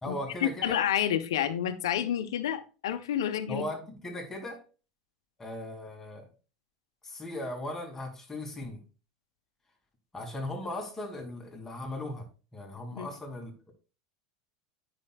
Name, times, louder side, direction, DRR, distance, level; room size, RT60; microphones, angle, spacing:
voice 1, 0.0-0.8 3.5-4.6 5.4-6.3 7.0-8.8 10.1-13.7, left 1 dB, 15° left, 2.5 m, -38 dB
voice 2, 0.6-3.6 12.9-13.1, left 10 dB, 85° left, 0.8 m, -29 dB
9.7 x 6.1 x 2.3 m
hypercardioid pair, 105°, 2 cm